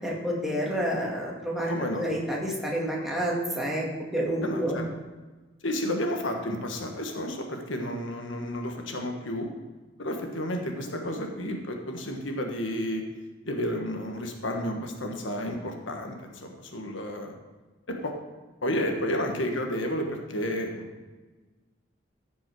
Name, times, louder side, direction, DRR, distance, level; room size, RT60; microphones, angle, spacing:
voice 1, 0.0-3.9 4.1-4.8, equal, ahead, -4 dB, 2.0 m, -29 dB
voice 2, 1.7-2.1 4.4-4.9 5.6-9.5 10.0-13.0 13.5-17.3 17.9-18.1 18.6-20.9, left 1 dB, 85° left, 3 dB, 1.3 m, -31 dB
14.5 x 5.4 x 4.7 m, 1.3 s
head